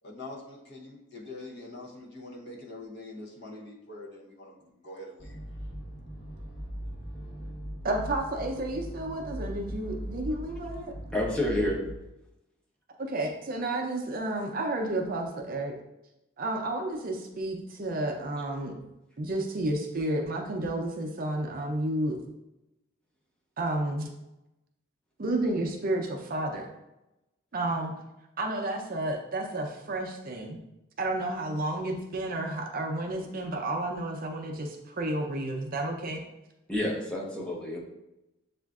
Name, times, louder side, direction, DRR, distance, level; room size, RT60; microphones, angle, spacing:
voice 1, 0.0-5.4, left 2 dB, 55° left, -2 dB, 0.7 m, -44 dB
sound 1, 5.2-12.0, equal, 80° left, 1.2 m, -39 dB
voice 2, 7.8-10.9 13.0-15.7 16.4-18.8 19.2-22.2 23.6-24.1 25.2-26.6 27.5-27.9 28.4-30.6 31.0-36.2, right 1 dB, 40° right, 2 dB, 0.5 m, -31 dB
voice 3, 11.1-11.8 36.7-37.8, left 1 dB, 5° left, -3 dB, 0.7 m, -29 dB
7.1 x 2.5 x 2.3 m, 0.93 s
head